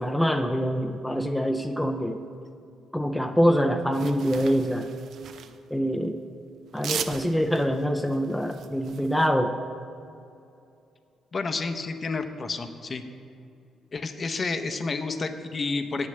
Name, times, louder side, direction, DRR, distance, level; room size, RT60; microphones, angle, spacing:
voice 1, 0.0-2.2 2.9-4.9 5.7-6.2 6.7-9.6, equal, 5° left, 4 dB, 0.5 m, -25 dB
sound 1, 3.9-5.6 6.7-9.3, right 8 dB, 70° right, 0.5 m, -38 dB
voice 2, 11.3-13.0 13.9-16.1, left 3 dB, 40° left, 8 dB, 0.7 m, -30 dB
8.4 x 6.5 x 7.8 m, 2.6 s
cardioid pair, 90°, 0 cm